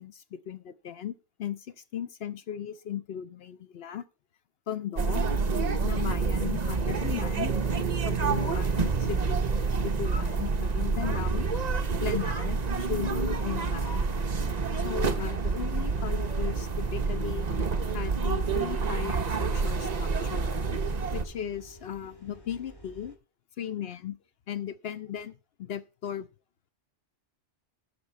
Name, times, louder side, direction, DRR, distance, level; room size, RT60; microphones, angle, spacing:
voice 1, 0.0-4.0 4.7-5.3 5.8-7.6 8.0-11.5 12.0-14.1 14.8-17.5 17.9-20.5 21.1-23.1 23.6-24.2 24.5-26.3, left 9 dB, 60° left, 0.8 m, -37 dB
sound 1, 5.0-21.2, right 4 dB, 40° right, 0.9 m, -28 dB
sound 2, 15.3-23.2, left 1 dB, 20° left, 2.0 m, -51 dB
11.5 x 6.7 x 4.4 m
omnidirectional pair, 1.2 m